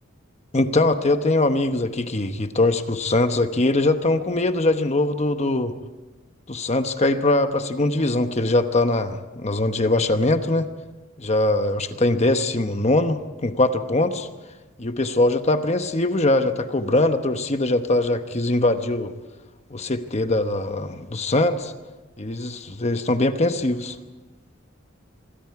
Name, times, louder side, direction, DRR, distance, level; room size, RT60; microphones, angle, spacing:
voice 1, 0.5-5.7 6.5-10.7 11.2-14.3 14.8-19.1 19.7-21.7 22.2-24.0, left 2 dB, 35° left, 8 dB, 1.0 m, -22 dB
27.0 x 24.5 x 4.8 m, 1.2 s
head